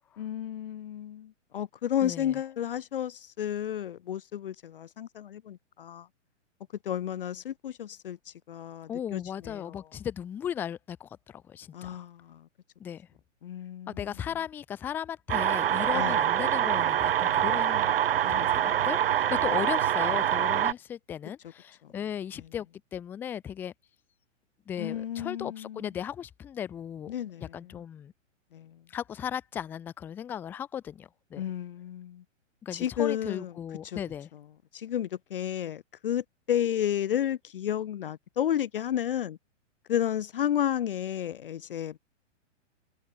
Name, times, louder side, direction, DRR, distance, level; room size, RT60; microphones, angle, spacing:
voice 1, 0.2-6.1 6.8-9.8 11.7-12.5 13.4-14.1 15.9-16.2 18.2-18.9 24.8-25.9 27.1-27.6 28.5-28.8 31.4-32.2 32.7-33.5 33.8-34.0 34.7-39.4 39.9-42.0, left 10 dB, 45° left, 0.7 m, -32 dB
voice 2, 2.0-2.4 8.9-12.0 12.8-13.1 13.9-17.9 18.3-22.7 22.9-23.7 24.7-27.1 27.4-28.1 28.9-31.4 32.6-34.3, left 9 dB, 5° left, 0.8 m, -36 dB
sound 1, 15.3-20.7, right 11 dB, 50° right, 1.0 m, -25 dB
hypercardioid pair, 175°, 37 cm